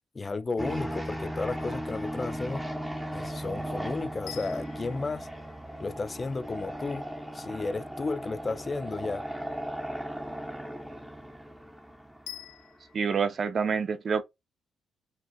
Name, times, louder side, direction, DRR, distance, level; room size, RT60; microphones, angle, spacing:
voice 1, 0.2-2.6 3.1-5.3 5.8-7.0 7.3-9.2, left 3 dB, 30° left, 0.4 m, -33 dB
sound 1, 0.6-12.7, equal, ahead, 0.9 m, -37 dB
sound 2, 4.3-6.4 12.3-13.0, left 11 dB, 85° left, 0.9 m, -47 dB
voice 2, 12.9-14.2, right 6 dB, 45° right, 0.6 m, -27 dB
5.3 x 2.4 x 2.3 m
cardioid pair, 90°, 0 cm